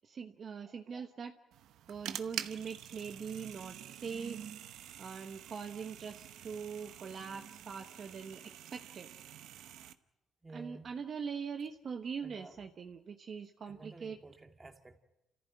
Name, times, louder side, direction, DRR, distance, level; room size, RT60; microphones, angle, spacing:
voice 1, 0.0-1.3 1.9-4.4 5.0-9.1 10.5-14.2, right 6 dB, 50° right, 5 dB, 1.1 m, -42 dB
voice 2, 0.7-1.0 10.4-10.9 12.2-12.6 13.7-15.0, right 3 dB, 20° right, 4 dB, 2.4 m, -52 dB
sound 1, 1.5-9.9, right 11 dB, 85° right, 0.9 m, -47 dB
28.0 x 14.5 x 9.4 m, 0.98 s
cardioid pair, 90°, 0 cm